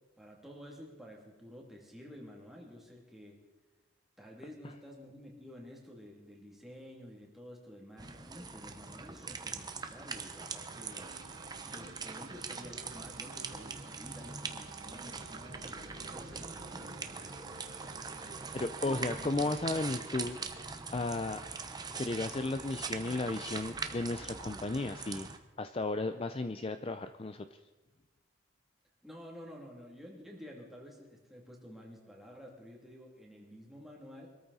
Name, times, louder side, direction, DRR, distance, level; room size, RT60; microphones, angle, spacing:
voice 1, 0.2-3.4 4.2-11.1 11.6-17.2 29.0-34.3, equal, ahead, -2 dB, 2.7 m, -51 dB
sound 1, 8.0-25.4, right 4 dB, 20° right, 0.9 m, -42 dB
sound 2, 10.0-19.9, right 5 dB, 80° right, 0.9 m, -55 dB
voice 2, 18.5-20.4 20.9-21.4 21.9-25.3 25.6-27.5, left 2 dB, 25° left, 9 dB, 0.5 m, -34 dB
24.5 x 13.5 x 4.2 m, 1.2 s
head